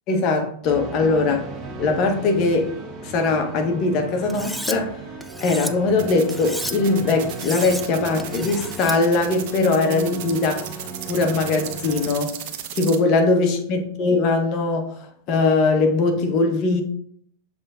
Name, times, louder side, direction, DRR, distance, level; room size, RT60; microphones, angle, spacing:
voice 1, 0.1-1.5 1.8-2.7 3.0-4.9 5.4-12.3 12.7-14.9 15.3-16.8, left 3 dB, 45° left, 1.3 m, -21 dB
sound 1, 0.6-12.1, right 3 dB, 30° right, 1.4 m, -36 dB
Cutlery silverware, 4.3-4.8 5.2-5.7 6.3-6.7 7.3-7.8 8.2-9.0, equal, ahead, 0.5 m, -32 dB
sound 2, 6.0-13.0, right 10 dB, 60° right, 0.9 m, -34 dB
7.2 x 3.6 x 3.8 m
hypercardioid pair, 105°, 0 cm